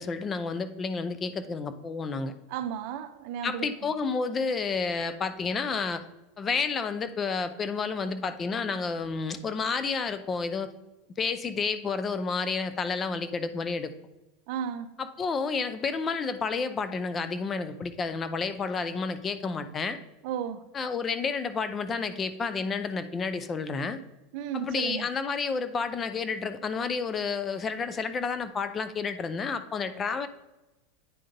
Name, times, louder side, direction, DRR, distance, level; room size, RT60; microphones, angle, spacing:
voice 1, 0.0-2.3 3.4-6.0 6.4-10.7 11.2-13.9 15.0-20.0 20.7-24.0 24.5-30.3, left 5 dB, 25° left, 0.5 m, -30 dB
voice 2, 2.5-3.9 14.5-14.9 20.2-20.6 24.3-25.1, right 8 dB, 60° right, 0.5 m, -34 dB
9.1 x 3.8 x 3.8 m
supercardioid pair, 120°, 0 cm